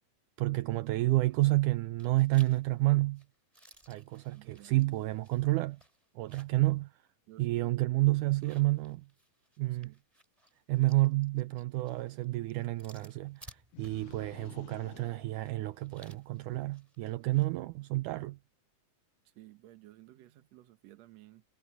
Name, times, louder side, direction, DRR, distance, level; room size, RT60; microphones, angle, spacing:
voice 1, 0.4-3.2 3.9-5.8 6.2-6.9 7.4-9.1 9.6-9.9 10.7-18.4, right 19 dB, 80° right, 1.9 m, -30 dB
sound 1, 1.3-1.7 2.0-6.7 7.1-7.2 8.2-17.5, right 1 dB, 10° right, 5.0 m, -60 dB
voice 2, 4.3-4.7 7.3-7.9 9.8-10.0 19.4-21.4, right 16 dB, 60° right, 2.0 m, -55 dB
sound 2, 13.7-16.2, left 18 dB, 80° left, 2.1 m, -54 dB
omnidirectional pair, 4.0 m